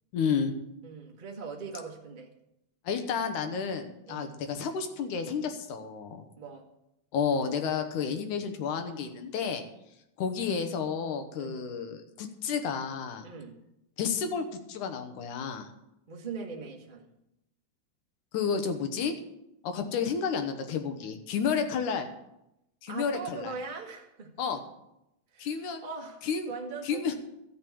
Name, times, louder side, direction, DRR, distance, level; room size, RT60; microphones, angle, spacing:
voice 1, 0.1-0.5 2.8-6.3 7.1-9.6 10.2-13.3 14.0-15.7 18.3-19.2 19.6-22.1 22.8-23.5 24.4-24.6 25.4-25.8 26.2-26.5 26.8-27.1, left 6 dB, 80° left, 7 dB, 2.6 m, -31 dB
voice 2, 0.8-2.3 4.1-4.3 6.4-6.6 11.3-11.6 13.2-13.5 16.1-17.1 22.9-24.3 25.3-27.1, right 4 dB, 30° right, 0 dB, 0.9 m, -41 dB
13.5 x 6.2 x 8.5 m, 0.85 s
omnidirectional pair, 3.5 m